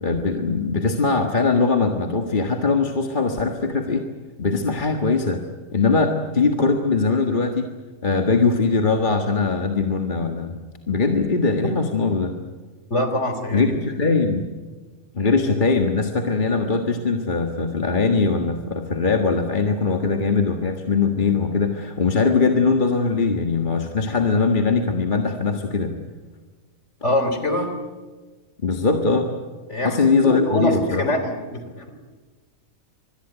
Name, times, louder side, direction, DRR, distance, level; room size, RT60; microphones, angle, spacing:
voice 1, 0.0-4.1 4.4-5.4 5.7-7.7 8.0-10.6 10.9-12.3 13.5-14.4 15.1-25.9 28.6-29.3 29.8-31.0, left 4 dB, 35° left, 4 dB, 1.8 m, -21 dB
voice 2, 12.9-13.7 27.0-27.7 29.7-31.9, left 1 dB, 50° left, 7 dB, 3.8 m, -24 dB
25.5 x 21.0 x 9.1 m, 1.4 s
omnidirectional pair, 1.5 m